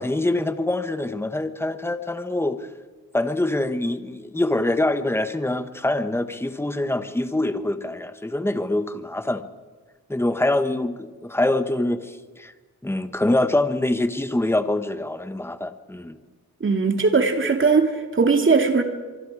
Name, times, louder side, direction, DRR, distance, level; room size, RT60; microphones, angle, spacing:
voice 1, 0.0-2.7 3.1-9.4 10.1-12.5 12.8-16.2, left 1 dB, 10° left, 10 dB, 1.3 m, -24 dB
voice 2, 16.6-18.8, right 4 dB, 40° right, 5 dB, 2.5 m, -19 dB
25.0 x 24.5 x 4.9 m, 1.3 s
wide cardioid pair, 105°, 32 cm